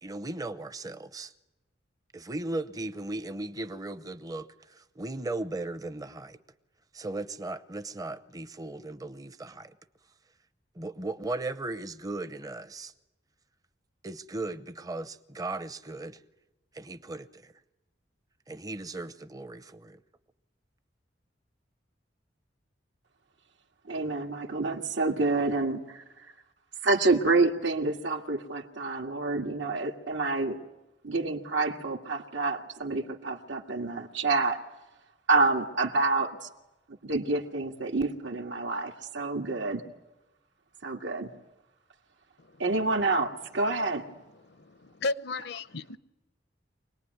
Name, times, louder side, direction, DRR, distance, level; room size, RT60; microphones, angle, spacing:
voice 1, 0.0-1.3 2.1-6.4 6.9-9.7 10.7-12.9 14.0-16.2 16.7-17.5 18.5-20.0, right 2 dB, 20° right, 0.8 m, -37 dB
voice 2, 23.9-26.0 26.8-30.6 31.0-34.6 35.3-36.5 36.9-39.8 40.8-41.3 42.6-44.1, right 3 dB, 80° right, 2.0 m, -28 dB
voice 3, 44.3-46.0, left 3 dB, 60° left, 0.8 m, -35 dB
25.0 x 19.5 x 9.4 m
head